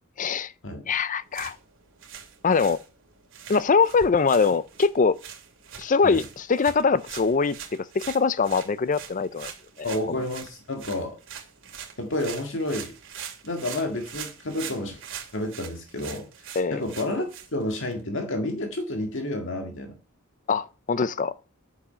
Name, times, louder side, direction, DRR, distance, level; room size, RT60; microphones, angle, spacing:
voice 1, 0.2-0.5 0.9-1.6 2.4-2.8 3.5-5.2 5.8-7.6 7.9-9.5 10.1-10.2 16.6-16.8 20.5-21.3, left 5 dB, 40° left, 0.5 m, -22 dB
sound 1, 1.2-18.0, right 8 dB, 60° right, 2.7 m, -43 dB
voice 2, 9.8-11.2 12.0-12.9 13.4-15.0 15.3-16.3 16.7-20.0, left 1 dB, 60° left, 1.9 m, -30 dB
11.5 x 8.9 x 5.7 m
head